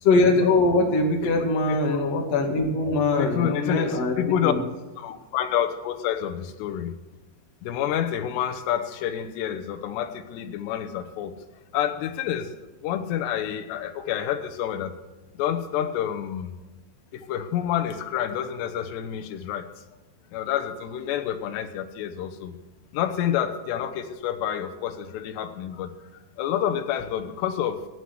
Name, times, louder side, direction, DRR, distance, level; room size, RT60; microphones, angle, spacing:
voice 1, 0.0-4.6, left 3 dB, 45° left, 1 dB, 2.6 m, -22 dB
voice 2, 1.7-2.0 3.2-4.5 5.0-6.9 7.6-11.3 11.7-14.9 15.3-16.6 17.1-19.7 20.3-22.6 22.9-25.9 26.4-27.9, left 10 dB, 75° left, 8 dB, 2.9 m, -28 dB
16.0 x 8.0 x 9.6 m, 1.2 s
omnidirectional pair, 5.5 m